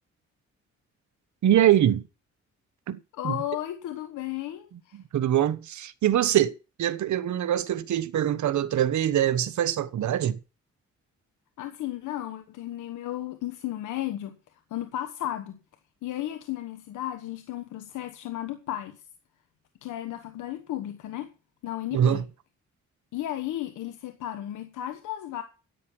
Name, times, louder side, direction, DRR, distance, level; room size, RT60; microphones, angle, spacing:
voice 1, 1.4-2.0 2.9-3.0 3.2-3.4 4.9-6.5 6.8-10.4 21.9-22.2, right 11 dB, 75° right, 1.1 m, -23 dB
voice 2, 3.1-5.0 11.6-14.4 14.7-15.6 16.0-19.0 19.8-21.3 21.6-22.2 23.1-25.4, left 13 dB, 90° left, 1.3 m, -34 dB
11.0 x 8.8 x 6.0 m
cardioid pair, 70°, 30 cm